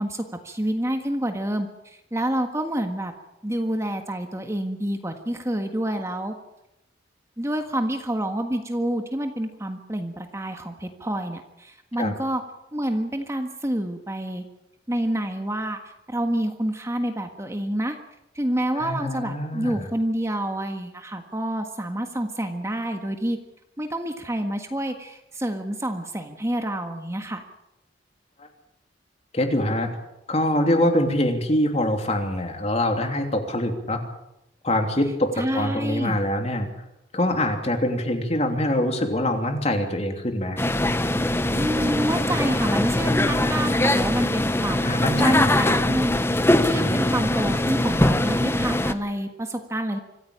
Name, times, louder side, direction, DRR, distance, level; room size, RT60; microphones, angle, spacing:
voice 1, 0.0-3.1 3.4-6.3 7.4-12.4 12.7-14.4 14.9-15.8 16.1-18.0 18.3-23.4 23.8-27.4 35.4-36.2 41.5-46.1 46.6-50.0, right 1 dB, 15° right, 5 dB, 1.6 m, -28 dB
voice 2, 18.7-19.9 28.4-28.5 29.3-29.9 30.3-34.0 34.6-36.8 37.1-40.6 44.8-45.9 46.7-47.0, left 1 dB, 35° left, 4 dB, 3.1 m, -24 dB
sound 1, 40.6-48.9, left 1 dB, 15° left, 1.0 m, -22 dB
25.5 x 15.0 x 8.7 m, 0.88 s
head